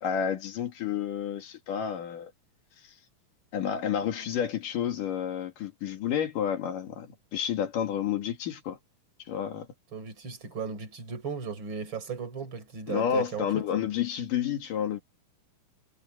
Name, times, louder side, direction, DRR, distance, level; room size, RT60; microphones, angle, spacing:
voice 1, 0.0-2.3 2.8-2.9 3.5-8.8 9.3-9.7 12.9-15.0, left 8 dB, 80° left, 3.7 m, -30 dB
voice 2, 9.9-13.5, right 6 dB, 35° right, 4.9 m, -36 dB
omnidirectional pair, 3.8 m